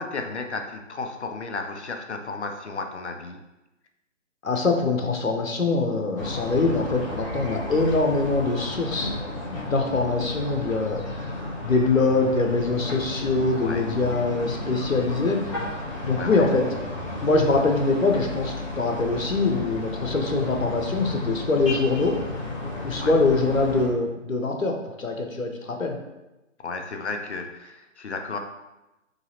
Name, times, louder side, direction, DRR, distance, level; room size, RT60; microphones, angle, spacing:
voice 1, 0.0-3.4 13.6-13.9 16.1-16.5 23.0-23.2 26.6-28.4, left 3 dB, 60° left, 5 dB, 0.5 m, -33 dB
voice 2, 4.4-9.2 9.5-11.2 11.6-15.7 16.0-16.6 17.2-22.2 22.8-26.0, left 3 dB, 90° left, 3 dB, 0.8 m, -23 dB
sound 1, 6.2-23.9, left 2 dB, 25° left, 0.9 m, -33 dB
3.9 x 2.8 x 2.8 m, 1.0 s
figure-of-eight pair, 145°, 39 cm